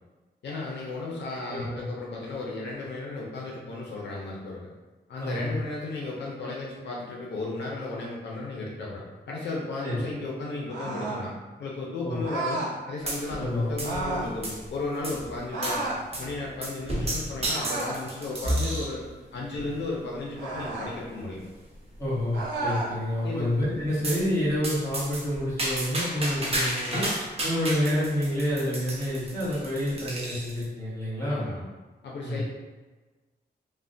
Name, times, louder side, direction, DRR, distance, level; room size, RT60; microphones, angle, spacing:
voice 1, 0.4-4.7 5.1-11.3 11.6-15.8 16.2-19.0 19.3-21.4 23.2-23.5 31.3-31.7 32.0-32.4, left 3 dB, 75° left, -3 dB, 0.5 m, -34 dB
voice 2, 1.5-1.9 5.2-5.6 9.8-10.0 12.0-12.2 13.3-13.7 22.0-27.0 27.4-31.4 32.2-32.4, equal, 15° left, -9 dB, 1.2 m, -28 dB
sound 1, 10.7-11.3 12.2-12.8 13.8-14.3 15.5-16.0 17.4-18.1 20.4-20.9 22.3-22.9, right 2 dB, 85° right, 0.7 m, -32 dB
sound 2, 13.1-13.5 13.8-14.7 15.0-15.2 15.6-15.8 16.1-16.3 16.6-19.0 19.6-19.9 20.6-20.7 21.0-21.1 21.4-21.5 21.9-22.4 24.0-24.2 24.6-30.6, right 1 dB, 35° right, 0.7 m, -33 dB
sound 3, 13.4-27.7, equal, 35° left, 1.4 m, -41 dB
3.2 x 2.1 x 2.6 m, 1.3 s
wide cardioid pair, 95°, 18 cm